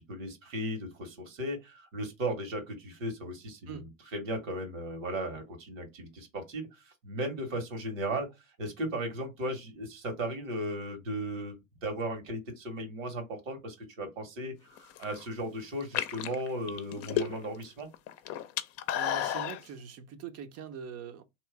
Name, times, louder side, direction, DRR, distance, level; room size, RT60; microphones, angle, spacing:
voice 1, 0.0-3.9 4.1-8.3 8.6-17.9, right 1 dB, 75° right, 1.8 m, -36 dB
sound 1, 14.8-15.2 15.8-17.6 17.9-19.6, left 10 dB, 40° left, 0.7 m, -32 dB
voice 2, 18.9-21.2, right 7 dB, 40° right, 0.8 m, -42 dB
3.1 x 3.1 x 4.5 m
hypercardioid pair, 100°, 39 cm